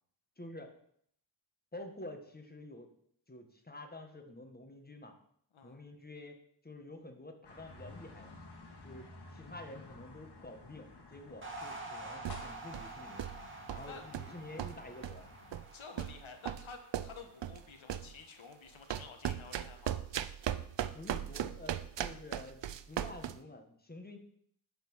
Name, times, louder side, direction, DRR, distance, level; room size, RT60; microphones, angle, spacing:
voice 1, 0.4-0.7 1.7-2.9 3.3-5.2 5.6-8.3 8.8-9.1 9.3-13.3 13.7-15.3 20.8-24.2, left 1 dB, 20° left, 5 dB, 1.7 m, -49 dB
sound 1, 7.4-15.6, left 3 dB, 60° left, 2.1 m, -53 dB
sound 2, 11.4-17.9, right 2 dB, 25° right, 2.1 m, -48 dB
sound 3, 12.2-12.9 13.2-13.4 13.7-14.3 14.6-15.2 15.5-15.7 16.0-17.6 17.9-18.1 18.9-23.4, right 10 dB, 65° right, 0.6 m, -38 dB
voice 2, 13.5-14.0 15.7-20.0, left 5 dB, 85° left, 5 dB, 1.5 m, -51 dB
10.5 x 4.5 x 7.2 m, 0.65 s
wide cardioid pair, 100°, 46 cm